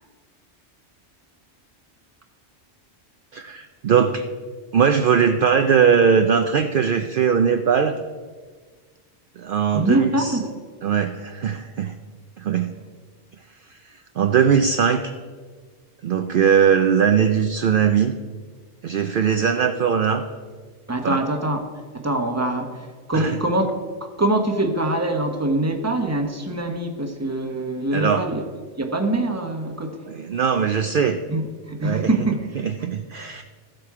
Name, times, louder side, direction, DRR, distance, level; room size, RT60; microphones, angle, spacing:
voice 1, 3.3-4.3 4.7-8.0 9.4-10.4 10.8-11.9 12.4-12.7 14.2-15.1 16.0-18.1 18.8-20.2 21.0-21.2 23.1-23.4 27.9-28.3 30.1-31.2 31.8-32.1 32.6-33.4, right 7 dB, 60° right, 6 dB, 0.7 m, -20 dB
voice 2, 9.7-10.5 20.9-21.6 21.9-28.4 28.8-30.1 31.3-32.7, right 2 dB, 15° right, 4 dB, 1.0 m, -24 dB
14.0 x 7.7 x 4.8 m, 1.5 s
omnidirectional pair, 1.1 m